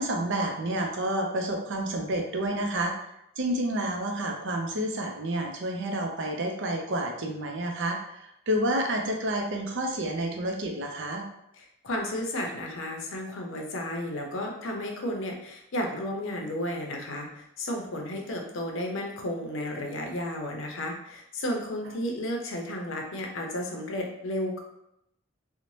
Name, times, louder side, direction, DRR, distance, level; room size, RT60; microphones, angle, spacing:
voice 1, 0.0-2.9 3.4-11.2, right 1 dB, 60° right, 2 dB, 0.5 m, -29 dB
voice 2, 11.6-24.6, left 1 dB, 65° left, 1 dB, 0.6 m, -33 dB
2.6 x 2.1 x 3.1 m, 0.81 s
head